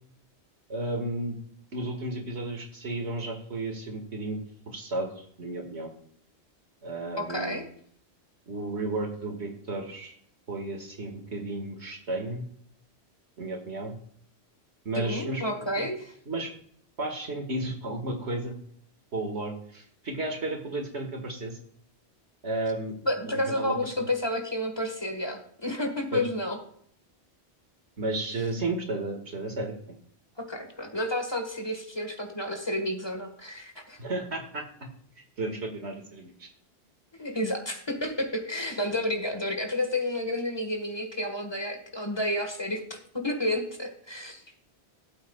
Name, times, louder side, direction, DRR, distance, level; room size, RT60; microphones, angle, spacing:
voice 1, 0.7-1.4 1.7-4.4 4.7-5.9 6.8-7.7 8.5-10.1 10.5-12.5 13.4-14.0 14.9-15.4 15.8-15.9 16.3-16.5 17.0-18.6 19.1-21.6 22.4-23.0 23.2-24.1 26.1-26.3 28.0-30.0 34.0-34.6 35.4-36.5, right 2 dB, 90° right, 3 dB, 2.2 m, -33 dB
voice 2, 7.2-7.6 14.9-16.1 23.0-26.6 30.4-34.0 37.1-44.6, left 1 dB, 25° left, 3 dB, 1.6 m, -31 dB
16.0 x 8.1 x 2.4 m, 0.63 s
omnidirectional pair, 1.1 m